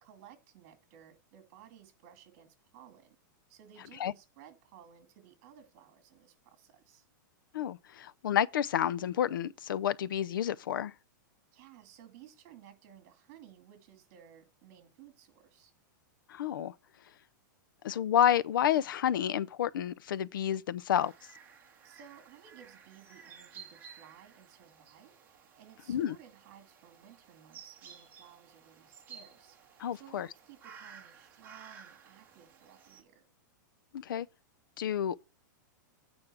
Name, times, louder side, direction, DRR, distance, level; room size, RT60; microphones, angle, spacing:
voice 1, 0.0-3.2 3.5-7.0 11.5-15.7 21.8-25.1 25.6-29.6 29.9-33.2, right 9 dB, 40° right, 2.5 m, -57 dB
voice 2, 7.5-10.9 16.3-16.7 17.8-21.1 25.9-26.2 29.8-30.3 33.9-34.3 34.8-35.2, left 10 dB, 85° left, 0.6 m, -30 dB
sound 1, 21.0-33.0, right 7 dB, 15° right, 1.6 m, -54 dB
8.9 x 5.1 x 5.9 m
supercardioid pair, 165°, 11 cm